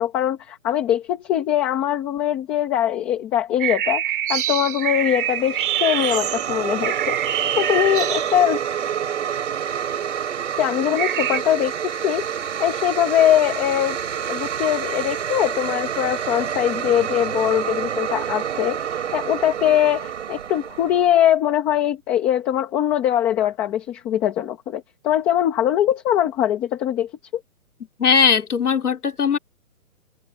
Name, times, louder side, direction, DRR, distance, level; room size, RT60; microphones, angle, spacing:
voice 1, 0.0-4.0 4.3-7.2 7.6-8.6 10.6-12.2 12.6-14.0 14.3-18.8 19.1-27.1, left 11 dB, 5° left, 0.9 m, -21 dB
sound 1, 3.6-8.6 11.0-11.4, right 11 dB, 35° right, 3.2 m, -25 dB
sound 2, 4.8-21.2, right 8 dB, 50° right, 3.6 m, -28 dB
voice 2, 28.0-29.4, left 6 dB, 90° left, 3.1 m, -19 dB
hypercardioid pair, 170°, 44 cm